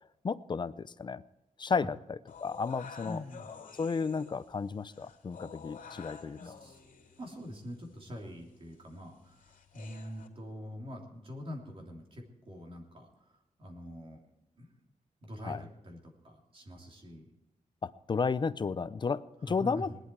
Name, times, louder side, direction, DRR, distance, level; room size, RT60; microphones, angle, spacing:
voice 1, 0.2-1.2 1.6-3.2 3.7-6.4 15.4-15.6 17.8-19.9, left 5 dB, 35° left, 15 dB, 0.5 m, -33 dB
sound 1, 2.3-10.3, left 6 dB, 85° left, 2.8 m, -51 dB
voice 2, 3.0-3.5 6.3-6.8 7.2-14.2 14.6-14.7 15.2-17.3 19.5-20.0, equal, 40° right, 1 dB, 3.1 m, -44 dB
19.0 x 11.5 x 4.6 m, 0.94 s
wide cardioid pair, 165°, 14 cm